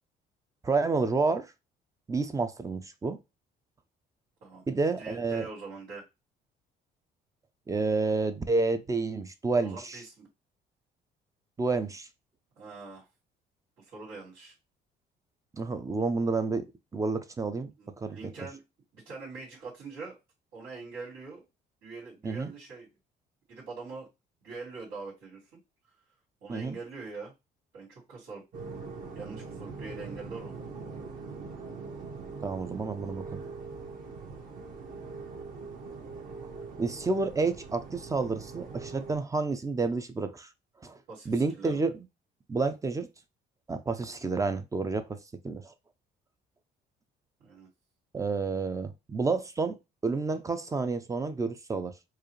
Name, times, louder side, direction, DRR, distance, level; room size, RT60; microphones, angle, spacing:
voice 1, 0.6-1.5 2.1-3.2 4.7-5.5 7.7-10.0 11.6-12.1 15.5-16.7 16.9-17.7 18.0-18.2 22.2-22.5 26.5-26.8 32.4-33.4 36.8-40.5 40.8-41.0 41.3-41.9 42.5-43.1 43.7-45.0 45.4-45.7 48.1-49.8 50.0-51.9, right 3 dB, 20° right, 0.4 m, -29 dB
voice 2, 4.4-6.0 9.6-10.3 12.6-13.1 13.8-14.5 17.8-18.6 18.9-20.2 20.5-21.4 21.8-22.9 23.5-24.1 24.4-25.4 26.4-27.3 27.7-28.4 29.1-30.5 41.1-41.8 47.4-47.7, right 4 dB, 85° right, 2.2 m, -43 dB
sound 1, 28.5-39.2, right 4 dB, 55° right, 1.3 m, -42 dB
4.7 x 2.4 x 3.1 m
cardioid pair, 110°, 17 cm